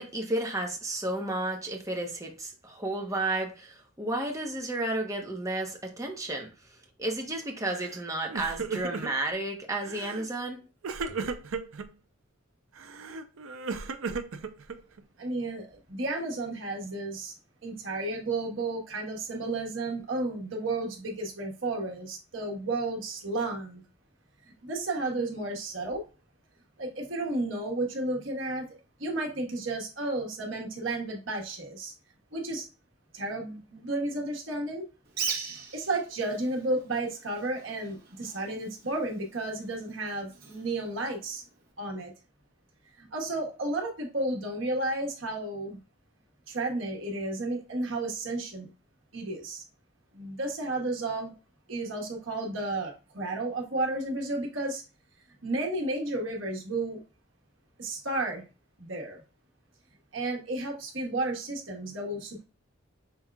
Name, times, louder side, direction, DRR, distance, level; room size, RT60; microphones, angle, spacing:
voice 1, 0.0-6.5 7.0-10.6, right 2 dB, 15° right, 1.0 m, -32 dB
Crying sobbing, 7.7-8.0 8.3-9.3 9.8-10.3 10.8-11.9 12.8-15.0, right 4 dB, 85° right, 0.6 m, -35 dB
voice 2, 15.2-17.3 17.6-23.8 24.4-26.0 26.8-28.7 29.0-31.9 32.3-32.7 33.1-34.8 35.5-41.4 41.8-42.1 43.0-45.8 46.5-48.7 49.1-49.6 50.1-51.3 51.7-54.8 55.4-57.0 57.8-58.4 58.8-59.2 60.1-62.4, right 2 dB, 65° right, 1.4 m, -32 dB
Bird, 35.1-41.7, right 6 dB, 50° right, 1.2 m, -41 dB
5.8 x 3.6 x 2.3 m
head